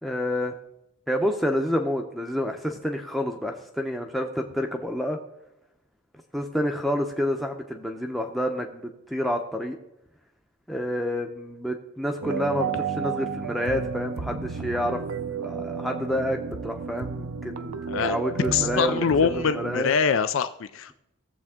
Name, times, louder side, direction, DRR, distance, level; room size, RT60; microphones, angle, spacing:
voice 1, 0.0-0.5 1.1-5.2 6.3-9.8 10.7-15.0 15.4-19.9, equal, ahead, 1 dB, 0.7 m, -28 dB
sound 1, 12.2-19.8, right 6 dB, 80° right, 0.6 m, -32 dB
voice 2, 18.5-20.9, left 6 dB, 60° left, 11 dB, 0.4 m, -24 dB
17.0 x 7.5 x 3.7 m, 0.86 s
head